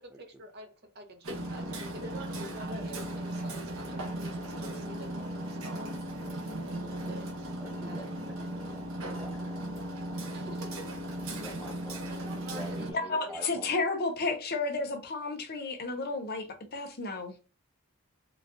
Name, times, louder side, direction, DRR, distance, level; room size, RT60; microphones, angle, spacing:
voice 1, 0.0-6.0 6.6-8.1 10.3-10.9 12.0-14.0, right 2 dB, 50° right, 0.7 m, -48 dB
Hammer, 1.2-12.9, right 1 dB, 75° right, 0.9 m, -37 dB
voice 2, 7.6-8.9 9.1-9.4 11.3-12.1 12.5-13.8, equal, 5° right, 0.3 m, -46 dB
voice 3, 12.9-17.4, left 3 dB, 45° left, 0.6 m, -32 dB
3.9 x 2.4 x 2.5 m
head